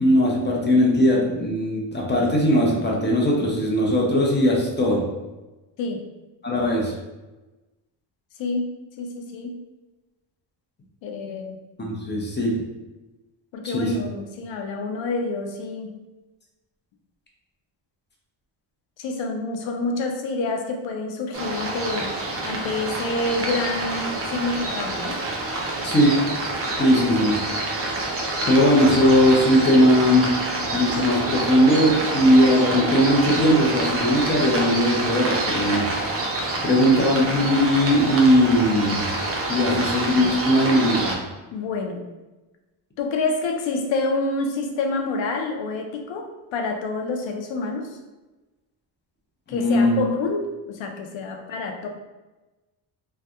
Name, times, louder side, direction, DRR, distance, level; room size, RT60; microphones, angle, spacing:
voice 1, 0.0-5.0 6.4-6.9 11.8-12.5 13.6-13.9 25.8-26.2 26.8-27.4 28.5-30.3 30.7-35.8 36.6-39.0 39.5-41.2 49.5-50.0, equal, 25° left, -2 dB, 0.6 m, -19 dB
voice 2, 8.4-9.6 11.0-11.6 13.5-15.9 19.0-22.1 22.4-25.2 31.9-32.3 41.5-42.0 43.0-48.0 49.5-51.9, left 3 dB, 70° left, 4 dB, 0.6 m, -28 dB
sound 1, 21.3-41.1, right 2 dB, 30° right, 0.5 m, -27 dB
2.7 x 2.2 x 2.3 m, 1.1 s
cardioid pair, 100°, 48 cm